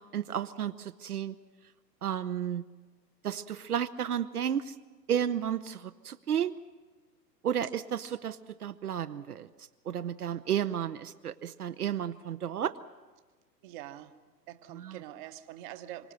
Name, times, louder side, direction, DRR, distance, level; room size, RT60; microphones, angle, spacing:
voice 1, 0.0-1.3 2.0-2.6 3.2-4.7 5.1-6.6 7.4-9.5 9.9-12.7, right 9 dB, 65° right, 11 dB, 0.8 m, -32 dB
voice 2, 13.6-14.2 14.5-16.1, right 13 dB, 30° right, 11 dB, 1.1 m, -44 dB
25.5 x 24.5 x 6.6 m, 1.3 s
figure-of-eight pair, 110°, 49 cm